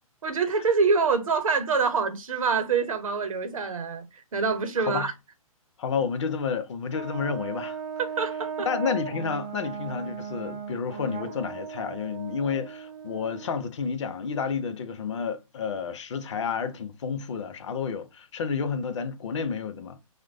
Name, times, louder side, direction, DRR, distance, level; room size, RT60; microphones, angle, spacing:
voice 1, 0.2-5.1 8.0-8.7, right 5 dB, 70° right, 0.7 m, -25 dB
voice 2, 4.8-5.1 5.8-7.8 8.7-20.0, left 6 dB, 55° left, 0.5 m, -30 dB
Brass instrument, 6.9-13.6, right 6 dB, 25° right, 0.4 m, -37 dB
3.0 x 2.1 x 2.5 m
figure-of-eight pair, 135°, 18 cm